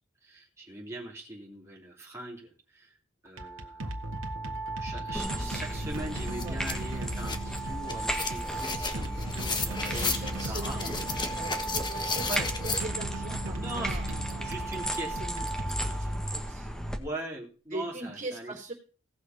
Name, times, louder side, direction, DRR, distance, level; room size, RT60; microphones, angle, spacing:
voice 1, 0.2-2.9 3.2-3.9 4.8-10.8 11.4-11.7 12.3-12.5 13.5-14.0 14.4-15.2 17.0-18.5, right 2 dB, 15° right, -4 dB, 3.4 m, -41 dB
sound 1, 3.3-16.5, right 2 dB, 85° right, 1.6 m, -36 dB
sound 2, 5.1-17.0, equal, 5° left, 1.5 m, -36 dB
sound 3, 5.5-5.6 5.9-12.8, left 4 dB, 20° left, 1.4 m, -34 dB
voice 2, 9.9-12.3 12.6-14.6 15.2-15.4 15.8-16.7 17.7-18.7, right 2 dB, 40° right, 1 dB, 3.4 m, -41 dB
17.5 x 6.5 x 5.3 m, 0.37 s
head